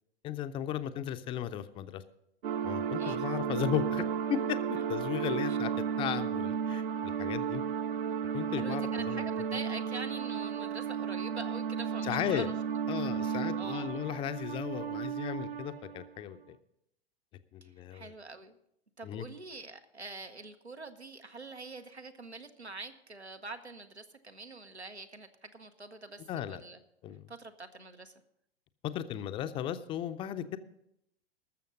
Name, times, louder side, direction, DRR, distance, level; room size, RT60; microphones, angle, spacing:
voice 1, 0.2-2.0 2.6-4.0 4.3-4.6 4.9-7.6 8.3-9.2 12.0-12.5 12.9-16.6 17.5-18.1 19.0-19.2 26.3-26.6 27.0-27.2 28.8-30.6, left 10 dB, 15° left, 10 dB, 0.5 m, -35 dB
sound 1, 2.4-16.1, right 7 dB, 60° right, 0.7 m, -33 dB
voice 2, 3.0-3.6 4.7-4.8 5.5-5.6 8.6-12.5 12.9-14.1 17.6-18.6 19.0-26.8 27.3-28.1, right 3 dB, 90° right, 7 dB, 1.1 m, -45 dB
19.5 x 6.9 x 5.2 m, 0.77 s
figure-of-eight pair, 100°, 32 cm